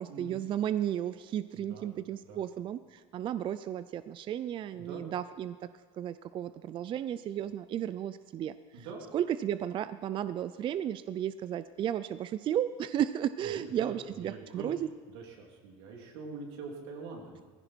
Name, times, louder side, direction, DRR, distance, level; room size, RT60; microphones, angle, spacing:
voice 1, 0.0-5.6 6.0-8.9 9.1-14.9, right 10 dB, 40° right, 14 dB, 0.4 m, -34 dB
voice 2, 1.5-1.9 2.3-2.4 4.7-5.0 8.7-9.0 13.4-14.7 15.1-17.5, right 4 dB, 90° right, 0 dB, 3.2 m, -44 dB
17.5 x 15.5 x 4.6 m, 1.5 s
supercardioid pair, 120°, 13 cm